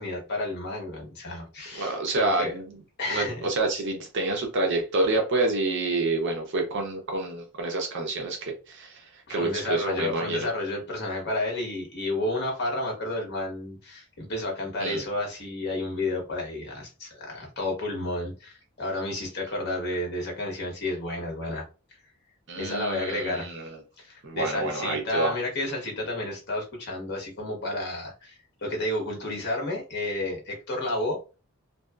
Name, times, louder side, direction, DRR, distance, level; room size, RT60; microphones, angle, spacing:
voice 1, 0.0-2.5 3.0-3.5 9.3-21.6 22.6-23.6 24.0-31.2, left 2 dB, 50° left, 1.0 m, -31 dB
voice 2, 1.7-2.8 3.1-10.5 14.8-15.0 22.5-23.8 24.2-25.4, right 2 dB, 55° right, 0.6 m, -28 dB
2.7 x 2.2 x 2.3 m
head